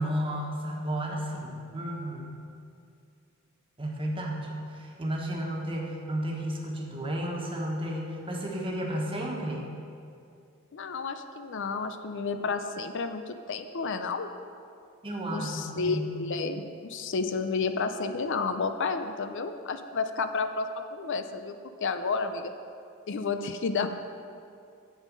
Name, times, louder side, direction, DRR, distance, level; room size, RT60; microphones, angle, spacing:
voice 1, 0.0-2.3 3.8-9.6 15.0-16.1, right 1 dB, 25° right, -1 dB, 1.4 m, -32 dB
voice 2, 10.7-14.3 15.3-21.6 21.8-22.5 23.1-23.9, left 4 dB, 60° left, 9 dB, 0.5 m, -31 dB
10.0 x 7.4 x 5.4 m, 2.5 s
head